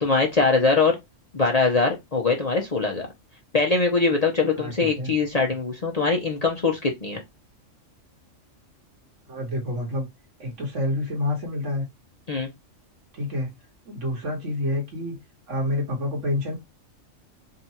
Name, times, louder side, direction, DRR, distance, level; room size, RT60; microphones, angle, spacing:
voice 1, 0.0-1.0 1.3-3.1 3.5-7.2 12.3-12.5, left 4 dB, 35° left, 0.7 m, -22 dB
voice 2, 4.6-5.1 9.3-10.1 10.4-11.8 13.1-13.5 13.9-15.2 15.5-16.6, left 1 dB, 70° right, 1.9 m, -28 dB
3.8 x 2.4 x 4.2 m
omnidirectional pair, 1.3 m